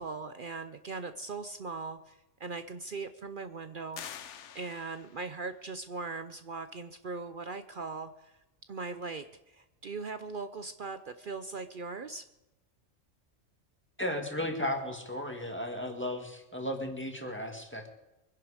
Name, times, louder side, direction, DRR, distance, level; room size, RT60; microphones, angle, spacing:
voice 1, 0.0-4.0 4.5-8.4 8.7-12.2, right 4 dB, 50° right, 10 dB, 0.7 m, -40 dB
sound 1, 3.9-5.3, left 8 dB, 70° left, 1.1 m, -45 dB
voice 2, 14.0-18.0, left 1 dB, 10° left, 3 dB, 1.9 m, -35 dB
23.5 x 10.5 x 5.0 m, 0.96 s
omnidirectional pair, 1.3 m